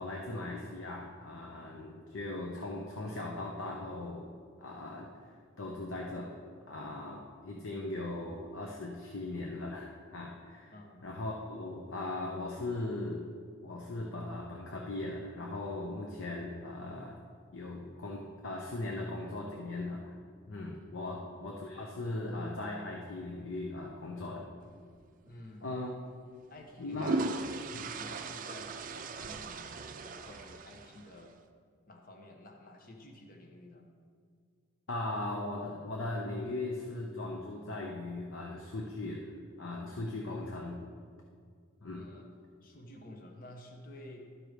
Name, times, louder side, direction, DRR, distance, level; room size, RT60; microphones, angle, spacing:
voice 1, 0.0-4.3 4.6-5.1 5.6-6.3 6.7-10.7 11.0-13.2 13.6-17.2 17.5-20.1 20.5-24.5 25.6-25.9 26.8-27.2 27.7-27.9 34.9-39.3 39.6-40.8 41.8-42.1, left 2 dB, 70° left, 0 dB, 0.8 m, -39 dB
voice 2, 10.7-11.0 21.0-21.3 25.2-25.7 26.5-27.3 27.8-31.3 31.9-33.9 41.9-42.3 42.6-44.3, left 1 dB, 45° left, 2 dB, 1.0 m, -51 dB
sound 1, 25.3-25.5 26.6-31.2, right 3 dB, 40° right, 0.4 m, -38 dB
12.5 x 4.7 x 5.1 m, 2.1 s
head